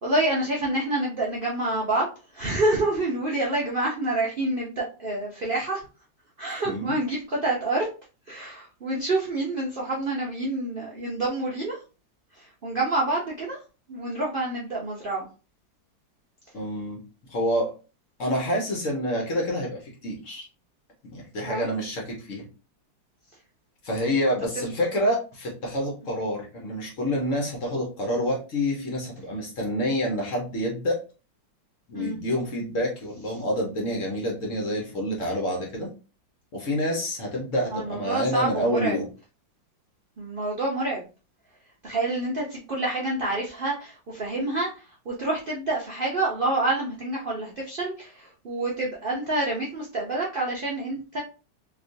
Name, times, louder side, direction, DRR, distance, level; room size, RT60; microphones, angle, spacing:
voice 1, 0.0-2.1 2.3-5.9 6.4-7.9 8.3-11.8 12.3-13.6 13.9-15.3 21.4-21.7 31.9-32.2 37.7-39.0 40.2-41.1 41.8-51.2, right 2 dB, 85° right, -4 dB, 0.4 m, -27 dB
voice 2, 16.5-17.0 17.3-17.7 18.2-20.4 21.0-22.4 23.8-31.0 31.9-35.9 36.5-39.1, equal, 50° left, -1 dB, 1.2 m, -27 dB
3.3 x 2.9 x 2.6 m, 0.33 s
omnidirectional pair, 2.0 m